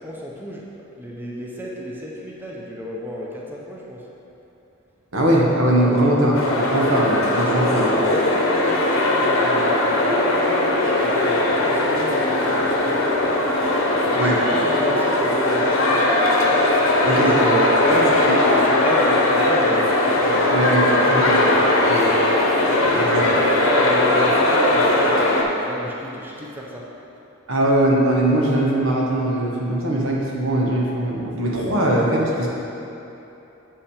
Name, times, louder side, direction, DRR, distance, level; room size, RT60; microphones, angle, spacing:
voice 1, 0.0-4.1 5.7-6.1 7.3-13.4 14.1-16.1 17.1-21.4 22.5-26.9, equal, 10° right, -3 dB, 0.7 m, -31 dB
voice 2, 5.1-7.9 14.2-14.4 17.0-18.0 20.5-20.8 21.1-21.4 21.9-22.1 22.9-23.3 27.5-32.5, right 1 dB, 80° right, -3 dB, 1.4 m, -20 dB
sound 1, 6.3-25.4, left 1 dB, 90° left, 1.0 m, -19 dB
7.2 x 5.8 x 5.0 m, 2.9 s
head